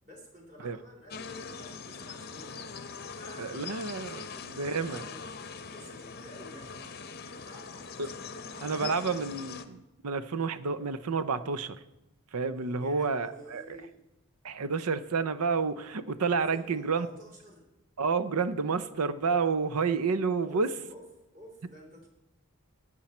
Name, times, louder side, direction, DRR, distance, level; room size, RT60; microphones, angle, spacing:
voice 1, 0.0-2.7 3.1-5.3 5.6-9.5 12.5-14.0 16.2-17.7 20.5-22.1, equal, 35° right, 0 dB, 3.2 m, -52 dB
sound 1, 1.1-9.7, left 5 dB, 45° left, 0.7 m, -42 dB
voice 2, 3.4-4.2 4.5-5.0 8.0-8.1 8.6-11.8 12.3-13.6 14.4-17.1 18.0-20.7, right 4 dB, 85° right, 13 dB, 0.7 m, -29 dB
15.0 x 9.3 x 4.3 m, 0.93 s
head